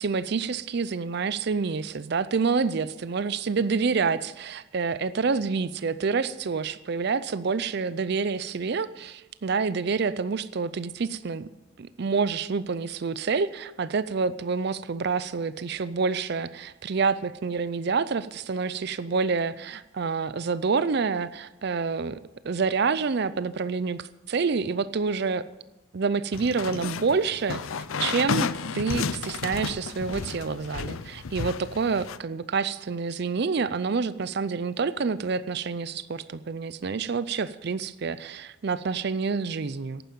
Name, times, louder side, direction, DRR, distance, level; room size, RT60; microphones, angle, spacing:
voice 1, 0.0-11.5 11.8-22.2 22.4-25.4 25.9-27.6 28.0-28.5 28.7-40.0, right 5 dB, 50° right, 15 dB, 0.5 m, -27 dB
sound 1, 26.3-32.2, left 5 dB, 75° left, 0.5 m, -32 dB
11.0 x 9.3 x 9.0 m, 1.0 s
head